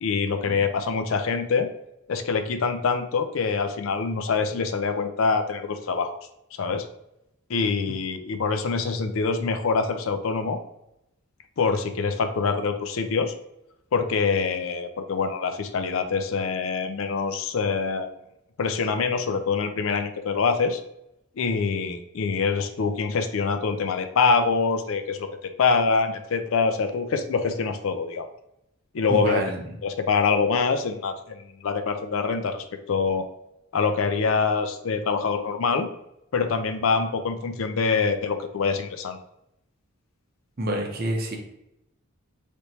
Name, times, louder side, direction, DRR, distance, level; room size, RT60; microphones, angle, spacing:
voice 1, 0.0-1.7 2.1-6.1 6.6-6.8 7.5-10.6 11.6-13.3 13.9-18.1 18.6-20.8 21.4-28.3 28.9-29.4 29.8-33.3 33.7-35.9 36.3-39.2, left 5 dB, 65° left, 7 dB, 0.4 m, -25 dB
voice 2, 29.1-29.6 40.6-41.4, right 1 dB, 45° right, 1 dB, 0.7 m, -27 dB
3.4 x 3.0 x 2.8 m, 0.83 s
head